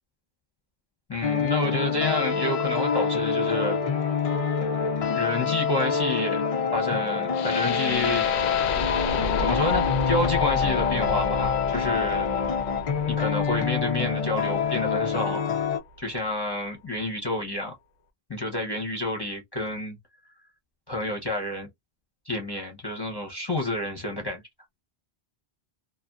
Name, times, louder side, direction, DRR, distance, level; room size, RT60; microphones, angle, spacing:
voice 1, 1.1-3.8 5.1-6.4 6.7-8.3 9.4-12.3 13.1-15.4 16.0-17.7 18.3-20.0 20.9-21.7 22.3-24.4, left 1 dB, 25° left, 0.7 m, -29 dB
sound 1, 1.2-15.8, left 6 dB, 55° left, 0.4 m, -26 dB
Wind instrument woodwind instrument, 1.3-7.9, right 6 dB, 55° right, 0.6 m, -45 dB
sound 2, 7.3-15.4, left 5 dB, 85° left, 0.9 m, -31 dB
2.6 x 2.4 x 2.3 m
omnidirectional pair, 1.1 m